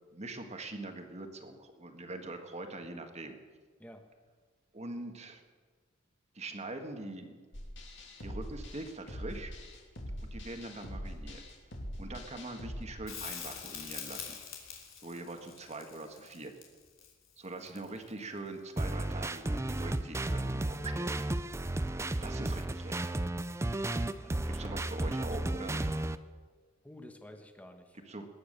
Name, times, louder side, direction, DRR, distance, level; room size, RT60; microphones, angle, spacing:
voice 1, 0.1-3.4 4.7-5.4 6.3-7.4 8.2-9.5 10.3-11.4 12.0-14.4 15.0-16.5 17.4-21.1 22.2-23.2 24.5-25.8 28.1-28.3, right 2 dB, 35° right, 5 dB, 1.6 m, -43 dB
sound 1, 7.5-12.8, equal, 60° left, 2.6 m, -43 dB
Crackle, 13.1-18.2 20.9-21.0, left 8 dB, 90° left, 3.2 m, -44 dB
sound 2, 18.8-26.2, right 1 dB, 15° right, 0.4 m, -33 dB
voice 2, 24.2-25.1 26.8-28.0, left 1 dB, 5° left, 5 dB, 1.3 m, -51 dB
20.5 x 9.7 x 6.7 m, 1.5 s
head